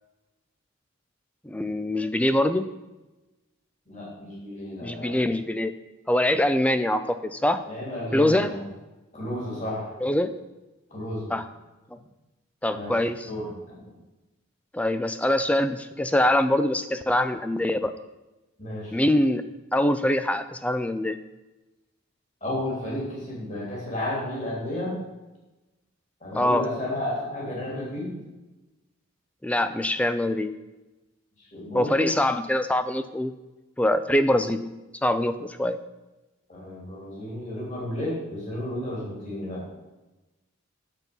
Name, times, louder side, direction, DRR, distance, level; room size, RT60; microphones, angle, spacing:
voice 1, 1.5-2.7 4.8-5.7 6.1-7.6 8.1-8.5 10.0-10.3 11.3-11.4 12.6-13.3 14.7-17.9 18.9-19.4 19.7-21.2 26.3-26.6 29.4-30.5 31.7-33.3 33.8-34.7 35.0-35.8, left 1 dB, 5° left, 11 dB, 0.3 m, -23 dB
voice 2, 3.9-5.2 7.6-8.6 9.1-10.0 10.9-11.4 12.7-13.0 13.2-13.9 18.6-18.9 22.4-24.9 26.2-28.2 31.4-32.1 36.5-39.6, left 1 dB, 35° left, -4 dB, 3.1 m, -32 dB
8.2 x 7.3 x 5.3 m, 1.1 s
head